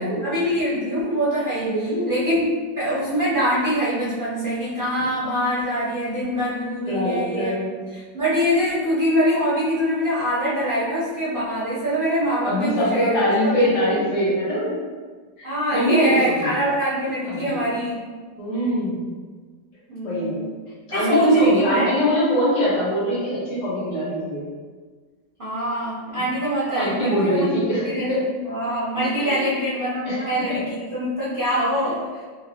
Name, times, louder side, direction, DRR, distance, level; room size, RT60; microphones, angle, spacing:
voice 1, 0.0-7.6 7.9-13.1 13.4-14.1 15.4-18.0 19.9-20.5 20.9-21.9 25.4-32.0, equal, 60° right, -9 dB, 0.5 m, -24 dB
voice 2, 1.6-2.1 6.8-7.7 12.4-14.8 15.4-16.5 17.3-17.6 18.4-19.0 20.0-20.4 20.9-24.4 26.7-28.2 29.2-29.6 30.0-30.2 30.5-30.6, equal, 60° left, -8 dB, 1.9 m, -22 dB
3.9 x 2.7 x 2.7 m, 1.5 s
omnidirectional pair, 2.0 m